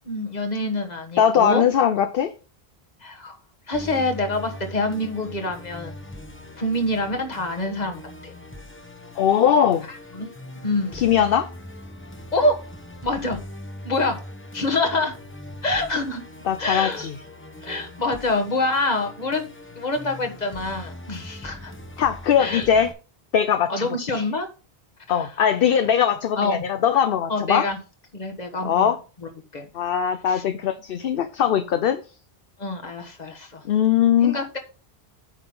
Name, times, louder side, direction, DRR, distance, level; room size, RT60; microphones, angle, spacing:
voice 1, 0.0-1.6 3.0-3.4 3.7-6.0 6.6-8.3 9.9-10.3 10.6-11.0 12.3-12.5 13.0-13.4 13.8-14.2 14.5-15.2 15.6-16.2 16.6-17.1 17.6-19.5 19.7-21.7 22.4-22.7 23.7-24.5 25.1-25.3 26.4-26.6 27.3-27.8 28.1-29.7 30.3-30.4 32.6-33.7 34.2-34.6, left 2 dB, 45° left, 1.6 m, -26 dB
voice 2, 1.2-2.3 9.2-9.9 10.9-11.5 16.5-17.1 22.0-22.9 23.3-23.9 24.1-24.2 25.1-27.7 28.6-29.0 29.7-32.0 33.6-34.4, left 9 dB, 65° left, 0.8 m, -20 dB
Musical instrument, 3.7-22.9, left 1 dB, 15° left, 0.9 m, -41 dB
9.3 x 5.9 x 3.8 m
omnidirectional pair, 1.0 m